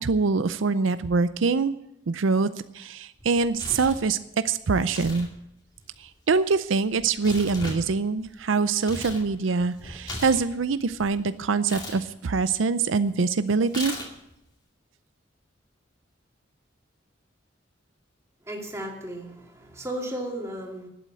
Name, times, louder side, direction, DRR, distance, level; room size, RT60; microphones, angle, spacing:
voice 1, 0.0-1.7 2.1-2.5 2.7-4.2 4.4-5.3 6.0-14.0, right 4 dB, 90° right, 13 dB, 0.5 m, -24 dB
Tearing, 3.2-4.0 4.8-5.3 5.6-9.2 9.6-11.1 11.6-12.0 13.7-14.3, left 1 dB, 20° left, 2.3 m, -38 dB
voice 2, 18.4-20.9, right 1 dB, 15° right, -1 dB, 2.5 m, -35 dB
11.5 x 8.2 x 8.8 m, 0.83 s
head